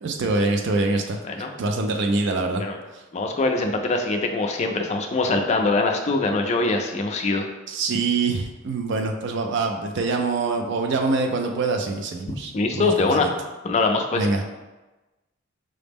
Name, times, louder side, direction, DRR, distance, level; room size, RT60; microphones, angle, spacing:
voice 1, 0.0-1.2 1.6-2.6 2.9-3.0 7.7-13.3 14.1-14.4, right 3 dB, 60° right, 4 dB, 0.4 m, -24 dB
voice 2, 3.1-7.5 12.5-13.3 13.6-14.3, left 3 dB, 35° left, 3 dB, 0.4 m, -23 dB
4.9 x 2.0 x 3.4 m, 1.1 s
head